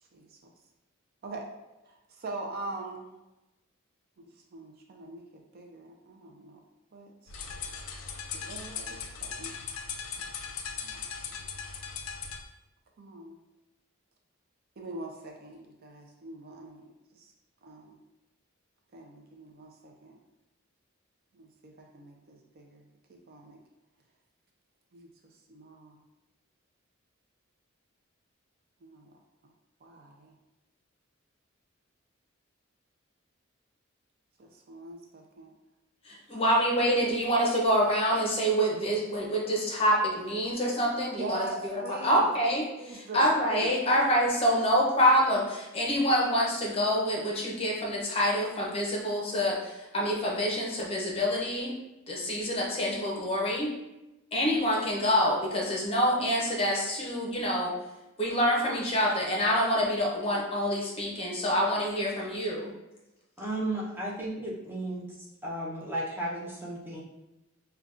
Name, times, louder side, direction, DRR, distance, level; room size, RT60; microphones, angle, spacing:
voice 1, 0.1-0.5 1.2-1.5 1.9-3.1 4.5-6.6 6.9-7.1 8.3-9.6 10.8-10.9 13.0-13.4 14.8-16.9 17.1-17.3 17.6-18.0 18.9-20.2 21.4-22.8 23.3-23.6 24.9-25.1 25.5-26.0 28.8-29.1 29.8-30.3 34.4-35.5 41.2-42.3 42.8-43.7, right 2 dB, 45° right, 2 dB, 0.4 m, -42 dB
sound 1, 7.3-12.4, left 6 dB, 80° left, 0.4 m, -38 dB
voice 2, 36.1-42.6 42.9-51.7 52.1-53.7 54.3-57.7 58.2-62.7, equal, 30° left, -3 dB, 0.7 m, -26 dB
voice 3, 63.4-65.1 65.4-67.0, right 1 dB, 10° right, -5 dB, 0.7 m, -34 dB
5.0 x 2.2 x 2.4 m, 0.99 s
head